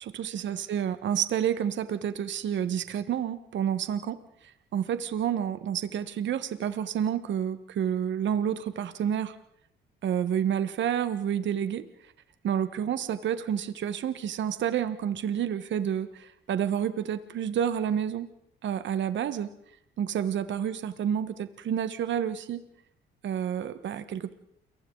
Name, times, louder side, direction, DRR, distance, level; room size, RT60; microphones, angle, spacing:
voice 1, 0.1-4.2 4.7-9.3 10.0-11.8 12.4-18.3 18.6-19.5 20.0-22.6 23.2-24.3, right 9 dB, 70° right, 11 dB, 1.5 m, -29 dB
29.5 x 23.5 x 4.0 m, 0.71 s
cardioid pair, 90°, 20 cm